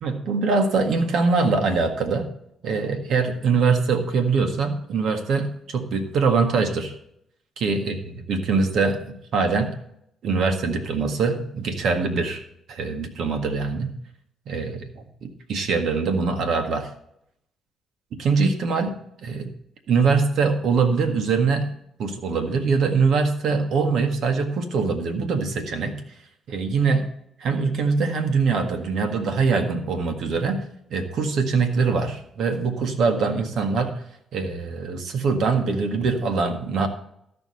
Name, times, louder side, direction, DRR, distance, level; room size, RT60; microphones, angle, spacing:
voice 1, 0.0-2.3 2.6-6.9 7.6-8.0 8.3-9.0 9.3-9.7 10.2-13.9 14.5-16.9 18.2-18.9 19.2-19.5 19.9-21.7 22.0-26.0 26.5-27.1 27.4-30.6 30.9-33.9 34.3-36.9, right 4 dB, 70° right, 6 dB, 1.7 m, -23 dB
13.0 x 5.2 x 6.3 m, 0.74 s
cardioid pair, 90°, 0 cm